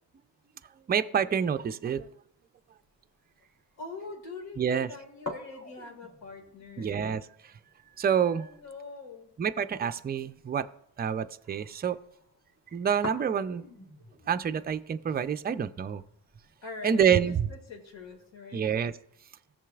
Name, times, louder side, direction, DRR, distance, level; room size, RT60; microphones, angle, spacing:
voice 1, 0.9-2.1 4.6-4.9 6.8-7.5 8.0-8.5 9.4-10.7 11.0-12.0 12.7-13.7 14.3-16.0 16.8-17.5 18.5-18.9, right 8 dB, 20° right, 10 dB, 0.4 m, -27 dB
sound 1, 2.6-18.4, left 2 dB, 35° left, 1.8 m, -49 dB
voice 2, 3.8-7.0 8.3-9.3 16.6-18.7, left 3 dB, 70° left, 2 dB, 2.1 m, -44 dB
15.0 x 6.8 x 2.4 m, 0.70 s
supercardioid pair, 75°, 47 cm